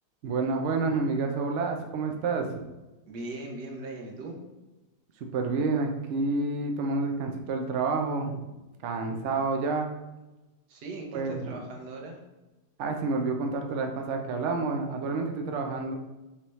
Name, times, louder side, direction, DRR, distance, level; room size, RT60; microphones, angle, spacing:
voice 1, 0.2-2.5 5.3-8.5 8.8-9.9 11.1-11.5 12.8-15.9, right 3 dB, 85° right, 3 dB, 0.6 m, -29 dB
voice 2, 3.1-4.4 10.7-12.2, right 2 dB, 65° right, 1 dB, 1.4 m, -39 dB
5.3 x 2.9 x 3.1 m, 1.1 s
omnidirectional pair, 2.0 m